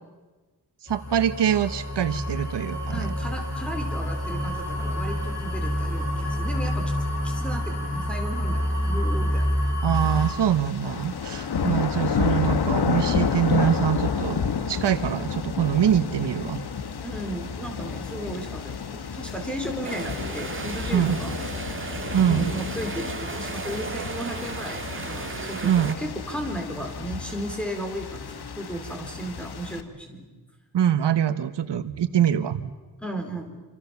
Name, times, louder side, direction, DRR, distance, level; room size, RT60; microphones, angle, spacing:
voice 1, 0.8-3.1 9.8-16.6 20.9-21.2 22.1-22.5 25.6-26.0 30.7-32.7, right 9 dB, 80° right, 11 dB, 1.2 m, -24 dB
sound 1, 0.9-10.3, equal, 40° left, 6.6 m, -27 dB
voice 2, 2.9-6.8 7.2-9.7 17.0-21.3 22.3-30.4 33.0-33.6, equal, 5° left, 3 dB, 4.2 m, -35 dB
sound 2, 9.9-29.8, left 6 dB, 65° left, 1.7 m, -30 dB
sound 3, 19.8-25.9, right 4 dB, 30° right, 2.0 m, -35 dB
27.0 x 26.5 x 7.1 m, 1.3 s
wide cardioid pair, 160°, 41 cm